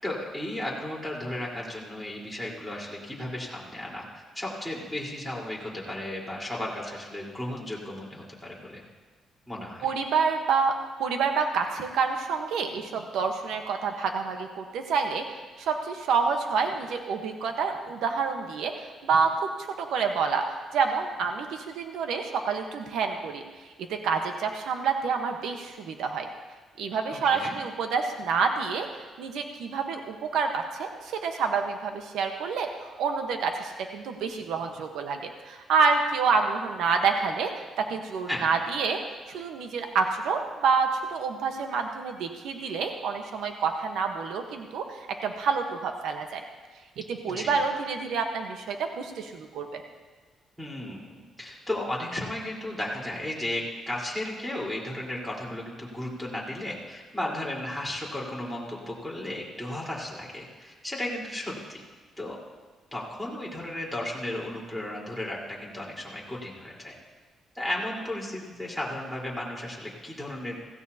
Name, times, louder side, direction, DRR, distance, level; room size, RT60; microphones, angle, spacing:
voice 1, 0.0-4.0 4.3-8.8 9.5-9.9 27.3-27.5 38.3-38.5 47.3-47.5 50.6-61.8 62.2-62.4 62.9-66.9 67.5-70.6, left 1 dB, ahead, -3 dB, 4.1 m, -34 dB
voice 2, 9.8-10.7 11.0-15.2 15.6-18.7 19.0-20.4 20.7-23.4 23.9-26.3 26.8-28.9 29.2-37.5 37.9-39.0 39.3-46.4 47.0-49.8, right 5 dB, 80° right, 4 dB, 1.1 m, -28 dB
16.0 x 16.0 x 2.9 m, 1.4 s
cardioid pair, 90°, 0 cm